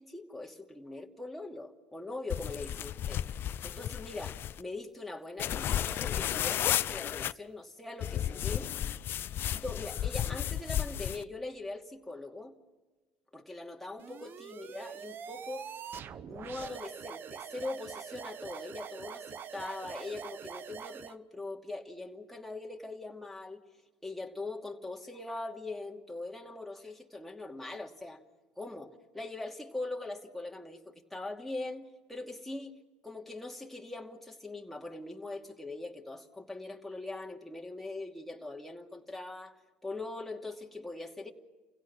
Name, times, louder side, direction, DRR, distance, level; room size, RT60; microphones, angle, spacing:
voice 1, 0.0-8.7 9.5-12.5 13.3-15.7 16.3-23.6 24.0-28.2 28.6-32.8 33.0-39.6 39.8-41.3, left 2 dB, 5° left, 2.6 m, -42 dB
sound 1, 2.3-4.6 5.4-7.3 8.0-11.2, left 11 dB, 50° left, 0.6 m, -33 dB
sound 2, 14.0-21.1, right 8 dB, 45° right, 0.9 m, -44 dB
30.0 x 16.5 x 6.2 m
supercardioid pair, 85°, 5 cm